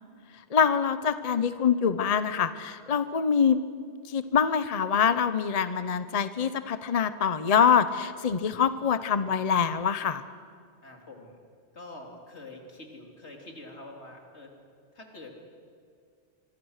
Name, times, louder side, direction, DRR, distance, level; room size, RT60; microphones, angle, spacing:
voice 1, 0.5-3.6 4.1-10.2, left 7 dB, 40° left, 12 dB, 0.8 m, -25 dB
voice 2, 10.8-11.4 11.7-14.5 14.9-15.4, left 2 dB, 80° left, 2 dB, 3.5 m, -46 dB
25.0 x 24.0 x 6.5 m, 2.3 s
omnidirectional pair, 1.1 m